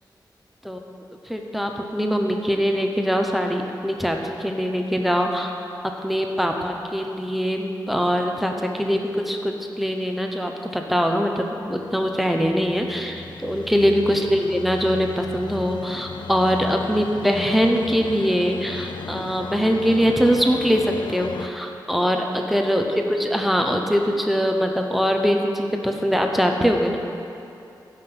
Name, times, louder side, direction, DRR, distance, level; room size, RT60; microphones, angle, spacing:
voice 1, 1.2-5.5 5.8-27.0, equal, ahead, 2 dB, 0.9 m, -22 dB
sound 1, 11.8-21.5, left 5 dB, 80° left, 0.4 m, -36 dB
15.5 x 5.8 x 6.0 m, 2.7 s
wide cardioid pair, 140°, 8 cm